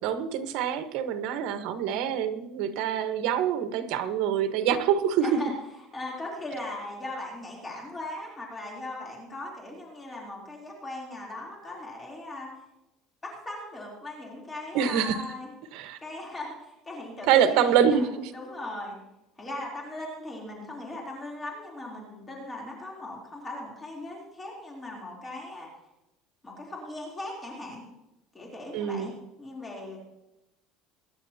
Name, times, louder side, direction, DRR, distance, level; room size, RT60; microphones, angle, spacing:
voice 1, 0.0-5.4 14.7-15.2 15.7-16.0 17.3-18.3 28.7-29.1, right 8 dB, 65° right, 9 dB, 1.3 m, -25 dB
voice 2, 5.2-5.5 5.9-12.5 13.2-15.5 16.0-18.1 18.3-19.0 19.4-25.7 26.4-27.8 28.3-29.1 29.4-30.0, left 1 dB, 15° left, -2 dB, 3.4 m, -39 dB
22.5 x 10.5 x 2.9 m, 0.94 s
cardioid pair, 145°, 0 cm